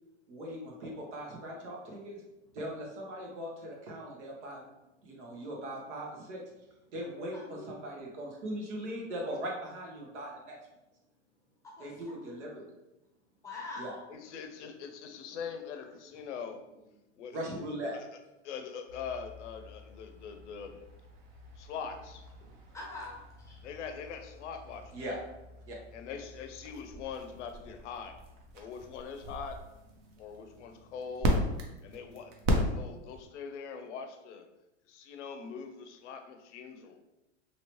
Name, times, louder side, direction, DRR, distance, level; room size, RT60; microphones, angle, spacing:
voice 1, 0.3-2.2 2.5-4.6 5.0-6.4 6.9-10.6 11.8-12.6 13.8-13.9 17.3-18.0 24.9-25.2 25.7-25.8, equal, 70° right, -1 dB, 1.2 m, -39 dB
voice 2, 7.3-7.7 11.6-12.4 13.4-14.0 15.1-15.2 22.4-23.6, left 2 dB, 10° left, -3 dB, 0.8 m, -45 dB
voice 3, 14.1-16.6 17.2-18.1 18.4-20.8 21.6-22.3 23.6-25.0 25.9-28.2 28.5-29.6 30.2-31.4 31.8-32.3 32.6-34.5 34.9-37.0, left 6 dB, 70° left, 7 dB, 0.6 m, -42 dB
sound 1, 18.9-33.3, equal, 30° right, 0.5 m, -38 dB
2.9 x 2.8 x 3.0 m, 0.95 s
supercardioid pair, 140°, 36 cm